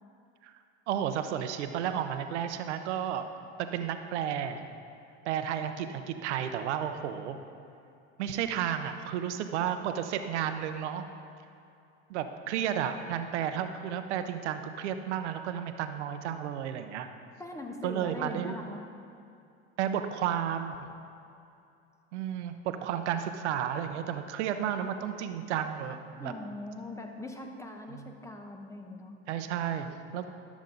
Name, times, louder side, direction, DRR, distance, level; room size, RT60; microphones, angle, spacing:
voice 1, 0.9-3.3 3.6-4.6 5.2-7.4 8.2-11.0 12.1-17.1 17.8-18.6 19.8-20.8 22.1-26.3 27.9-28.0 29.3-30.3, right 9 dB, 80° right, 8 dB, 0.7 m, -32 dB
voice 2, 17.4-18.8 26.2-29.1, left 2 dB, 10° left, 3 dB, 1.0 m, -41 dB
12.5 x 7.2 x 3.9 m, 2.6 s
hypercardioid pair, 90°, 34 cm